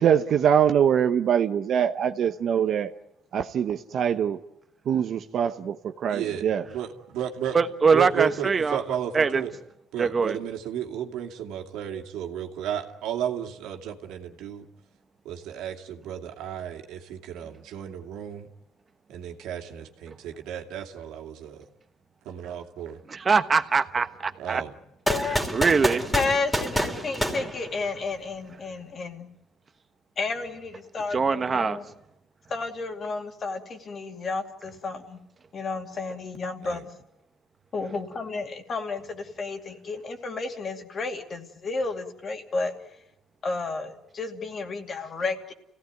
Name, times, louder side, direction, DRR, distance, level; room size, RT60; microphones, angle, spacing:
voice 1, 0.0-2.9 3.3-4.4 4.9-6.6, right 8 dB, 55° right, 0.9 m, -23 dB
voice 2, 6.1-7.6 7.9-9.5 9.9-14.7 15.2-18.5 19.1-21.7 22.2-23.0 24.4-24.8 26.1-26.2 36.6-36.8, right 9 dB, 85° right, 2.4 m, -33 dB
voice 3, 7.5-8.8 9.1-9.4 10.0-10.4 23.1-24.6 25.5-26.0 31.1-31.8, right 5 dB, 30° right, 1.2 m, -22 dB
voice 4, 25.1-25.4 26.1-29.3 30.2-31.8 32.5-35.2 35.5-36.9 37.7-42.7 43.4-45.5, left 3 dB, 35° left, 2.6 m, -32 dB
sound 1, 25.1-28.2, equal, 5° left, 3.0 m, -28 dB
30.0 x 17.0 x 9.3 m
cardioid pair, 130°, 0 cm